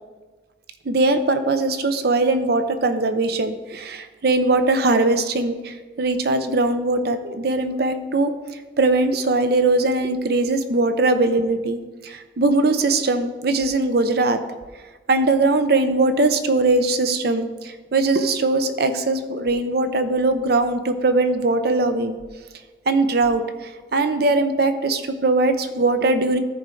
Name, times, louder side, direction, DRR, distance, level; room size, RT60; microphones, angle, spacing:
voice 1, 0.9-8.3 8.8-14.4 15.1-22.2 22.9-23.4 23.9-26.4, right 2 dB, 60° right, 9 dB, 0.6 m, -20 dB
14.0 x 4.6 x 3.8 m, 1.3 s
head